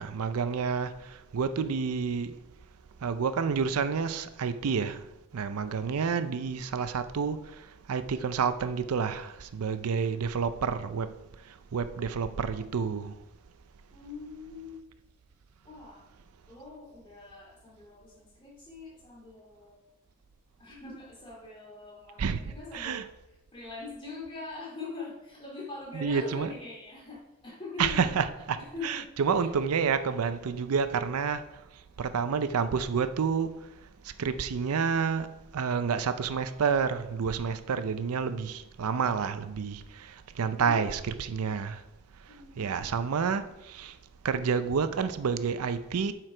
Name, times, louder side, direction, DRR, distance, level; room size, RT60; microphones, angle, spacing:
voice 1, 0.0-2.4 3.0-5.1 5.3-11.1 11.5-13.2 22.2-22.4 22.7-23.0 25.9-26.5 27.8-28.6 28.8-31.4 32.0-33.7 34.2-41.8 42.6-44.0 44.2-46.1, right 6 dB, 90° right, 0.5 m, -29 dB
voice 2, 6.3-6.6 13.9-14.8 15.6-16.0 16.4-19.8 20.6-23.1 23.5-28.1 28.6-29.5 40.6-40.9 42.3-43.0, left 3 dB, 25° left, 2.4 m, -43 dB
7.6 x 4.7 x 4.9 m
head